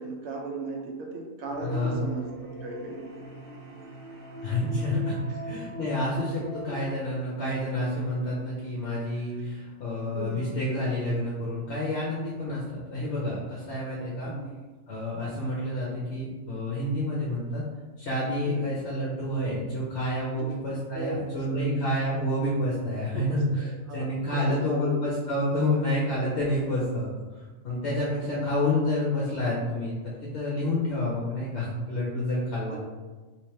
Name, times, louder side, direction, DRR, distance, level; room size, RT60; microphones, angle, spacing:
voice 1, 0.0-3.4 5.3-5.4 10.1-10.5 14.2-14.5 18.4-18.8 20.3-20.6 20.9-21.8 23.1-25.0 28.2-28.5 32.7-32.8, right 2 dB, 65° right, 1 dB, 0.9 m, -37 dB
sound 1, 1.4-6.9, right 2 dB, 80° right, 1.5 m, -40 dB
voice 2, 1.6-2.0 4.4-5.1 5.4-14.3 14.9-17.6 18.0-27.1 27.6-32.8, left 1 dB, 60° left, -7 dB, 1.0 m, -29 dB
3.3 x 3.0 x 3.1 m, 1.3 s
omnidirectional pair, 1.4 m